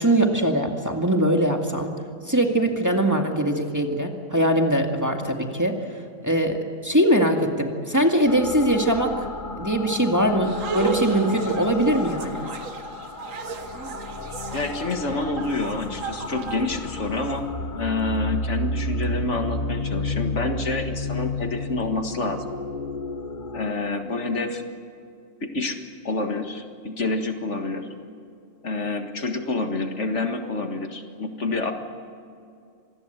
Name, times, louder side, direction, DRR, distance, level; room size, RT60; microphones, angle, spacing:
voice 1, 0.0-1.9 2.3-5.8 6.2-9.3 9.6-12.4, right 1 dB, 15° right, 2 dB, 2.0 m, -22 dB
sound 1, 8.3-23.7, left 2 dB, 40° left, 1.1 m, -32 dB
sound 2, 10.4-17.3, right 5 dB, 75° right, 1.6 m, -34 dB
voice 2, 14.5-17.5 17.7-22.5 23.5-24.6 25.4-25.8 26.0-27.9 28.6-31.7, left 3 dB, 60° left, 6 dB, 2.0 m, -28 dB
26.0 x 20.5 x 8.0 m, 2.4 s
omnidirectional pair, 1.4 m